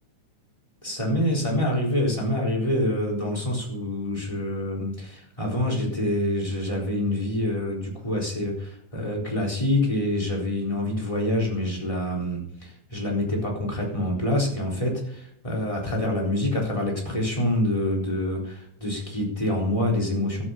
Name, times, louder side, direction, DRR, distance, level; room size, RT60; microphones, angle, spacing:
voice 1, 0.8-20.5, left 1 dB, 10° left, -2 dB, 3.9 m, -26 dB
14.0 x 8.7 x 5.4 m, 0.68 s
omnidirectional pair, 3.4 m